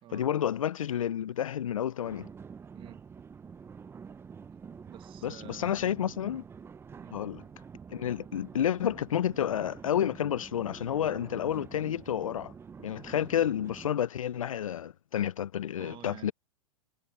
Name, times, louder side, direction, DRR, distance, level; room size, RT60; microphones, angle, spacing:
voice 1, 0.1-2.3 5.2-6.4 7.1-7.4 7.9-12.5 12.8-16.3, left 10 dB, 85° left, 0.6 m, -30 dB
sound 1, 2.0-13.9, right 6 dB, 15° right, 0.9 m, -48 dB
voice 2, 2.7-3.1 4.9-5.8 6.9-7.2 15.8-16.3, right 13 dB, 30° right, 1.8 m, -50 dB
hypercardioid pair, 120°, 17 cm